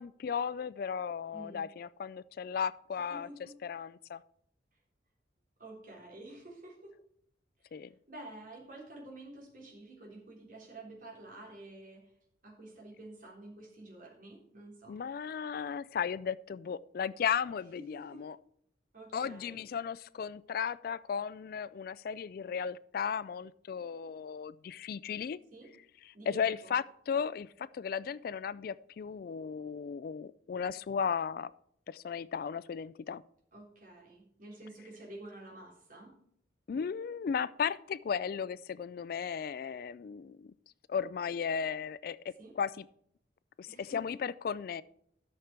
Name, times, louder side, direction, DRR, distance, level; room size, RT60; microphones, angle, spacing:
voice 1, 0.0-3.3 3.6-4.2 7.7-7.9 14.9-18.4 19.1-25.4 26.3-31.5 31.9-33.2 36.7-40.5 40.9-42.8 43.6-44.8, left 7 dB, 50° left, 18 dB, 0.3 m, -35 dB
voice 2, 1.3-1.6 2.9-3.5 5.6-7.0 7.6-12.1 12.4-15.0 17.8-18.2 18.9-19.6 25.5-25.7 26.1-26.7 33.5-36.2 42.4-42.6 43.7-44.2, right 2 dB, 45° right, -1 dB, 3.7 m, -50 dB
12.5 x 6.6 x 4.5 m, 0.69 s
head